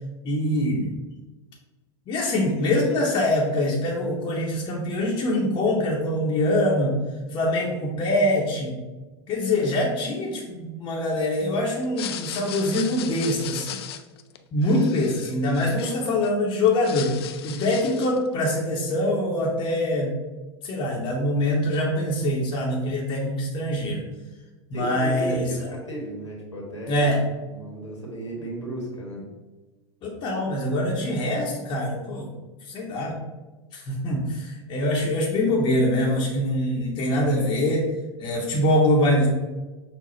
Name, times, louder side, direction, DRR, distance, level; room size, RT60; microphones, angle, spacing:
voice 1, 0.2-0.9 2.1-6.9 7.3-8.7 9.3-13.8 14.5-17.1 17.4-20.1 20.6-24.0 24.7-25.7 26.9-27.2 30.0-32.3 32.7-33.2 33.7-37.9 38.2-39.3, left 1 dB, 30° left, -3 dB, 0.9 m, -24 dB
sound 1, 11.8-16.3 16.6-18.3, left 10 dB, 60° left, 0.4 m, -37 dB
voice 2, 24.7-27.1 27.5-29.3, right 1 dB, 85° left, -2 dB, 1.3 m, -34 dB
6.0 x 2.3 x 3.9 m, 1.2 s
figure-of-eight pair, 85°, 15 cm